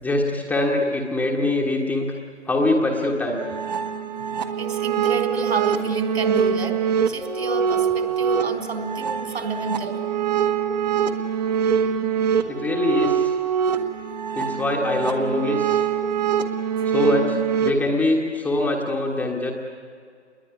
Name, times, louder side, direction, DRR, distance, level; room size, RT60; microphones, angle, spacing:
voice 1, 0.0-2.1 2.5-3.4 12.5-13.3 14.3-15.8 16.8-19.5, left 2 dB, 5° left, -1 dB, 1.5 m, -23 dB
sound 1, 3.4-17.7, right 7 dB, 35° right, 1.7 m, -24 dB
voice 2, 4.6-6.7 7.1-10.0 16.8-16.9, right 3 dB, 60° right, 5 dB, 4.3 m, -29 dB
28.0 x 21.5 x 9.6 m, 2.2 s
figure-of-eight pair, 135°, 35 cm